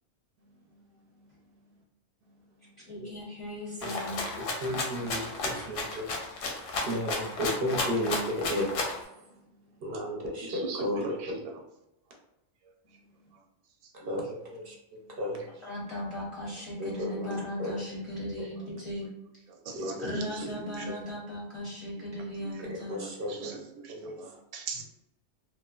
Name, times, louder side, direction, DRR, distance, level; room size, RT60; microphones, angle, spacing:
voice 1, 2.9-4.3 15.6-19.1 20.0-23.0, left 1 dB, 35° left, -6 dB, 0.5 m, -37 dB
Rattle (instrument), 3.8-9.0, left 3 dB, 85° left, 1.0 m, -33 dB
voice 2, 4.6-6.1 6.8-8.7 9.1-9.3 9.8-11.3 13.9-15.7 16.8-17.7 18.4-18.5 19.7-20.3 20.9-21.0 22.9-23.5 23.9-24.4, equal, 60° right, -1 dB, 0.7 m, -34 dB
voice 3, 10.4-11.3 19.7-20.0 20.3-20.9 22.4-22.5 23.0-23.6 23.8-24.8, right 4 dB, 90° right, 3 dB, 0.9 m, -40 dB
2.9 x 2.1 x 2.3 m, 0.89 s
omnidirectional pair, 1.2 m